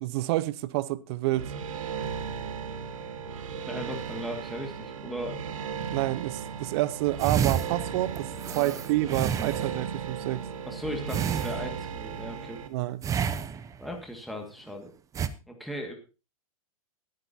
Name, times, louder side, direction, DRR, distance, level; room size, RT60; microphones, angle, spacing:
voice 1, 0.0-1.5 5.9-10.5 12.7-13.0, right 17 dB, 45° right, 0.8 m, -29 dB
sound 1, 1.3-12.7, right 7 dB, 65° right, 1.8 m, -36 dB
voice 2, 3.7-5.4 8.5-8.8 10.7-12.6 13.8-14.9 15.5-16.0, equal, ahead, 1.9 m, -37 dB
sound 2, 7.2-9.9 11.1-12.0 13.0-13.9 15.1-15.3, right 8 dB, 20° right, 0.8 m, -30 dB
21.0 x 9.1 x 2.8 m
hypercardioid pair, 115°, 18 cm